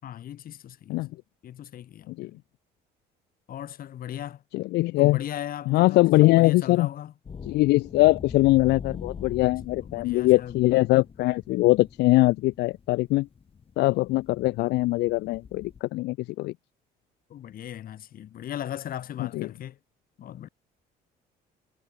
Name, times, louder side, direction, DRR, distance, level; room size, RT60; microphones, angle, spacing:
voice 1, 0.0-1.1 1.4-2.4 3.5-4.4 5.0-7.1 9.8-10.6 17.3-19.8 20.2-20.5, left 11 dB, 60° left, 5.4 m, -38 dB
voice 2, 4.5-5.2 5.7-6.9 7.4-13.3 13.8-16.5 19.3-19.5, left 19 dB, 85° left, 0.8 m, -22 dB
sound 1, 7.2-15.8, left 6 dB, 35° left, 2.8 m, -43 dB
cardioid pair, 110°, 17 cm